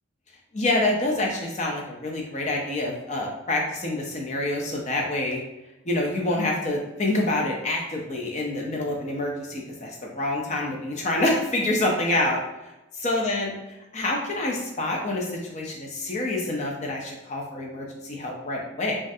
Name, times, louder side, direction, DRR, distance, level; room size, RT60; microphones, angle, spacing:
voice 1, 0.5-5.4 5.8-12.7 13.0-13.5 13.9-19.0, left 2 dB, 35° left, 0 dB, 0.5 m, -27 dB
3.1 x 2.3 x 2.6 m, 0.98 s
head